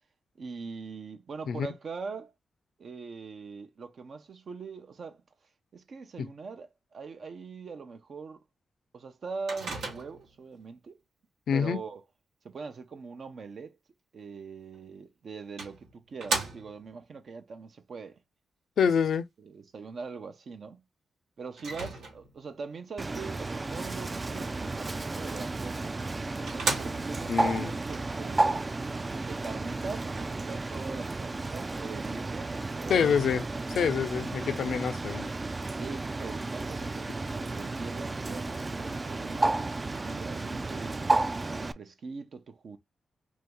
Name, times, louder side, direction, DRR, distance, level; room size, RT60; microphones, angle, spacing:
voice 1, 0.4-2.3 2.8-5.2 5.7-8.4 8.9-11.0 11.5-12.0 12.4-13.8 14.1-18.2 18.8-18.9 19.4-20.8 21.4-26.0 26.5-28.7 29.3-33.1 35.7-39.6 40.0-41.1 41.5-42.8, right 4 dB, 65° right, 0.7 m, -42 dB
Microwave oven, 9.5-10.4 14.7-14.8 15.6-17.0 21.6-22.5 25.6-25.7 26.1-26.2 26.5-27.3, right 3 dB, 85° right, 1.1 m, -34 dB
voice 2, 11.5-11.8 18.8-19.2 27.3-27.7 32.9-33.4 33.8-35.3, left 7 dB, 75° left, 0.4 m, -26 dB
Bird, 23.0-41.7, right 2 dB, 35° right, 0.3 m, -32 dB
3.1 x 2.7 x 3.4 m
supercardioid pair, 50°, 0 cm